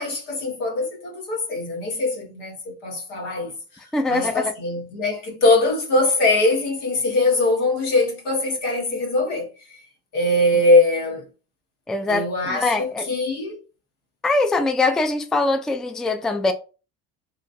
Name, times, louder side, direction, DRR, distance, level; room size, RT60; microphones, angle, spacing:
voice 1, 0.0-3.8 4.1-9.8 10.1-11.3 12.1-13.6, left 2 dB, 80° left, 1.1 m, -22 dB
voice 2, 3.9-4.5 11.9-13.1 14.2-16.5, left 3 dB, ahead, 0.3 m, -22 dB
3.0 x 2.4 x 2.4 m
hypercardioid pair, 65°, 34 cm